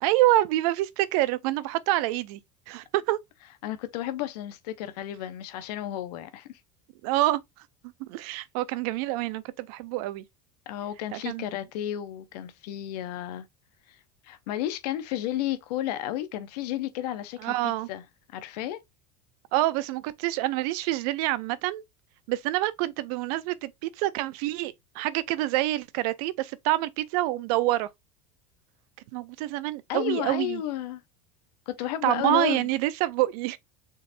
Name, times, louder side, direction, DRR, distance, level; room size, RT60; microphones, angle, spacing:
voice 1, 0.0-2.4 2.7-3.2 7.0-7.4 8.1-10.2 11.1-11.4 17.4-17.9 19.5-21.8 22.3-27.9 29.1-30.6 32.0-33.6, right 16 dB, 70° right, 0.6 m, -27 dB
voice 2, 3.6-6.6 10.7-13.4 13.9-14.0 14.2-18.0 18.3-18.8 29.9-31.0 31.7-32.7, left 12 dB, 80° left, 0.8 m, -32 dB
4.1 x 3.8 x 2.6 m
supercardioid pair, 125°, 20 cm